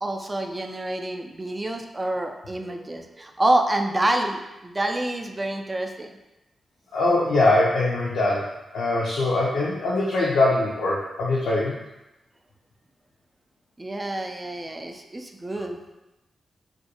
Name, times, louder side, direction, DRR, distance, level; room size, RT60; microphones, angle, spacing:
voice 1, 0.0-6.1 13.8-15.8, right 1 dB, 30° right, 5 dB, 0.3 m, -27 dB
voice 2, 6.9-11.8, left 2 dB, 85° left, -6 dB, 0.4 m, -22 dB
2.4 x 2.2 x 2.8 m, 0.99 s
supercardioid pair, 45°, 0 cm